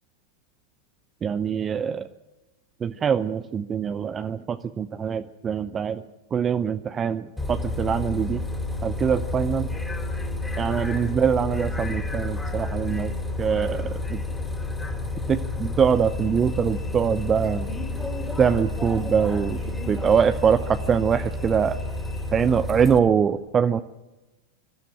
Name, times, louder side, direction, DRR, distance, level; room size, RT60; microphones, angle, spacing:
voice 1, 1.2-2.1 2.8-6.0 6.3-8.4 8.8-9.7 10.6-14.2 15.3-17.7 18.4-19.6 19.9-21.8 22.3-23.8, right 7 dB, 20° right, 10 dB, 0.7 m, -23 dB
Bus, 7.4-23.0, left 2 dB, 5° left, 2.9 m, -30 dB
24.5 x 13.0 x 9.1 m, 1.1 s
figure-of-eight pair, 90°, 0 cm